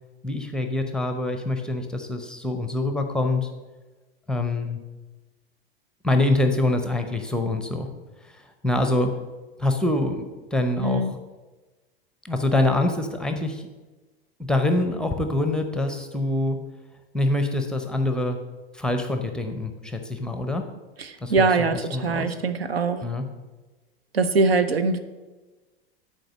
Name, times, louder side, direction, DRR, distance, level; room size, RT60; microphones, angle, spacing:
voice 1, 0.2-3.5 4.3-4.8 6.0-7.9 8.2-9.1 9.6-11.2 12.2-13.7 14.4-16.6 17.1-18.4 18.7-20.6 21.2-22.4 23.0-23.2, left 2 dB, 5° left, 5 dB, 0.7 m, -25 dB
voice 2, 10.8-11.1 21.0-23.0 24.1-25.0, right 3 dB, 80° right, 10 dB, 0.7 m, -22 dB
7.7 x 4.5 x 6.3 m, 1.2 s
figure-of-eight pair, 90°, 30 cm